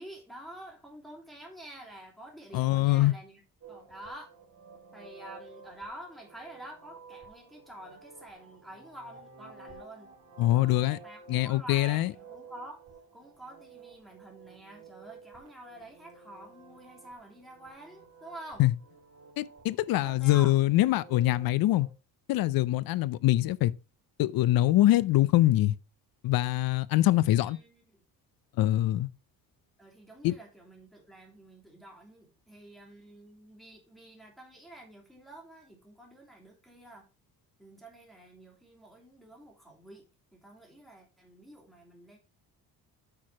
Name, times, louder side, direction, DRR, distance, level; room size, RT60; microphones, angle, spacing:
voice 1, 0.0-3.4 3.7-4.3 4.9-10.1 10.5-12.8 13.1-18.6 20.0-20.6 27.2-28.0 29.8-37.1 37.6-40.0 40.3-42.2, right 1 dB, ahead, 2.8 m, -48 dB
voice 2, 2.5-3.1 10.4-11.0 11.3-12.1 18.6-18.7 19.4-21.9 22.3-23.7 24.2-25.7 26.2-27.6 28.6-29.1 30.2-30.3, left 15 dB, 70° left, 0.6 m, -24 dB
sound 1, 3.6-21.9, right 4 dB, 40° right, 2.4 m, -52 dB
8.8 x 4.8 x 4.7 m
cardioid pair, 145°, 37 cm